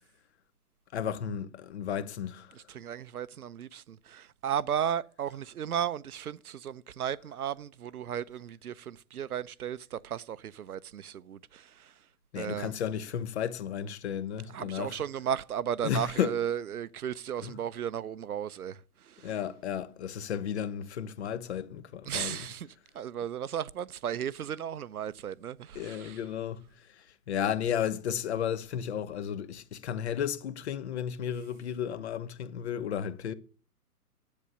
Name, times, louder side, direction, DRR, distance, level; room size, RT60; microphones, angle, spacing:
voice 1, 0.9-2.6 12.3-15.0 15.8-16.4 17.4-17.6 19.2-22.4 25.7-26.6 26.9-33.3, left 9 dB, 45° left, 1.0 m, -33 dB
voice 2, 2.5-11.9 12.4-12.7 14.5-18.8 19.0-19.3 22.1-22.7 22.9-26.2, right 9 dB, 65° right, 0.7 m, -35 dB
10.5 x 8.4 x 8.1 m
figure-of-eight pair, 130°, 47 cm